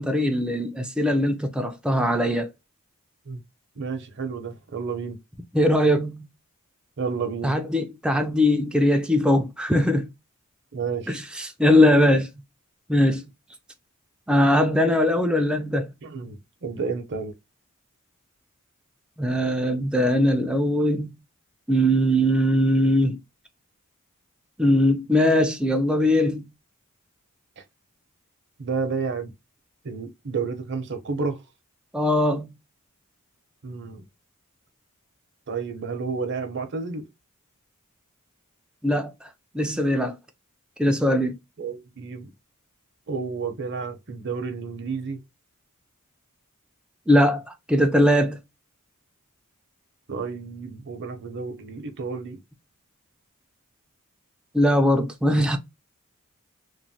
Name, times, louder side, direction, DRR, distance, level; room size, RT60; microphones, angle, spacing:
voice 1, 0.0-2.5 5.5-6.3 7.4-10.1 11.1-12.3 12.9-13.2 14.3-15.9 19.2-21.2 21.7-23.2 24.6-26.5 31.9-32.5 38.8-39.3 39.5-40.2 40.8-41.4 47.1-48.4 54.5-55.6, left 1 dB, 5° right, 0.4 m, -21 dB
voice 2, 3.8-5.2 7.0-7.5 10.7-11.2 16.0-17.3 27.6-27.7 28.6-29.3 29.8-31.4 33.6-34.1 35.5-37.1 41.6-42.3 43.1-45.2 50.1-52.4, right 5 dB, 55° right, 0.7 m, -31 dB
3.0 x 2.1 x 2.6 m
head